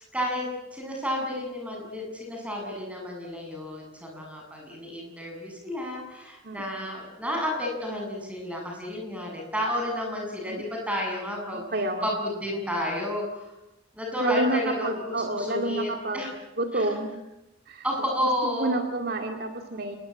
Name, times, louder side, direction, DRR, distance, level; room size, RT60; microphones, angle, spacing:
voice 1, 0.1-11.6 12.0-13.4 13.9-16.3 16.7-16.9 17.8-18.8, left 1 dB, 5° right, 0 dB, 7.9 m, -31 dB
voice 2, 6.4-6.8 10.5-10.6 11.5-12.1 14.2-16.3 16.6-17.2 17.7-17.8 18.4-20.0, right 2 dB, 50° right, 4 dB, 2.3 m, -29 dB
27.5 x 20.5 x 8.7 m, 0.93 s
head